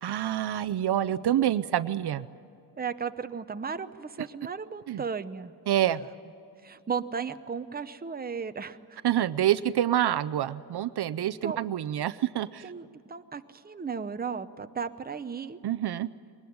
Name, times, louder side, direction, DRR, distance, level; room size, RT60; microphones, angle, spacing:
voice 1, 0.0-2.2 4.9-5.0 5.7-6.0 9.0-12.7 15.6-16.1, right 11 dB, 70° right, 15 dB, 0.7 m, -27 dB
voice 2, 2.8-5.5 6.6-9.0 11.4-11.6 12.6-15.6, right 6 dB, 20° right, 9 dB, 0.8 m, -35 dB
21.5 x 19.5 x 9.4 m, 2.6 s
wide cardioid pair, 115°, 41 cm